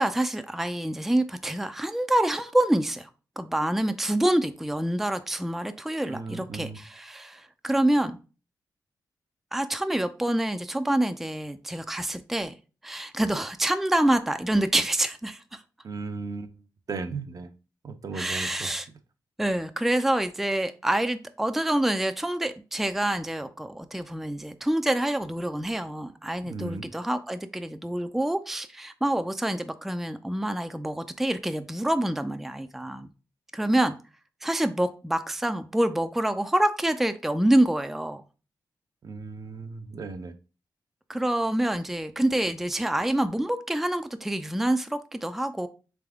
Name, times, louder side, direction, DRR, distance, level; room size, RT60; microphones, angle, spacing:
voice 1, 0.0-3.1 3.4-8.2 9.5-12.5 12.8-15.6 18.1-18.9 19.4-33.1 33.5-33.9 34.4-38.2 41.1-45.7, right 1 dB, 5° right, 0.4 m, -26 dB
voice 2, 6.0-6.8 15.8-16.6 16.9-17.5 17.8-18.7 26.4-26.9 39.0-40.3, right 4 dB, 50° right, 0.5 m, -36 dB
3.5 x 3.3 x 3.5 m
cardioid pair, 65°, 8 cm